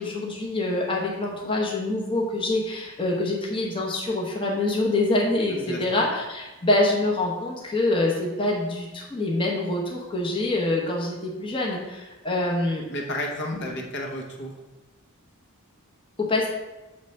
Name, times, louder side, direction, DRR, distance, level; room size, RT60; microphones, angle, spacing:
voice 1, 0.0-12.8 13.5-13.6 16.2-16.5, left 2 dB, 25° left, -2 dB, 0.9 m, -25 dB
voice 2, 5.5-5.8 12.9-14.5, left 1 dB, 50° left, 0 dB, 0.9 m, -32 dB
6.9 x 3.3 x 5.3 m, 1.1 s
head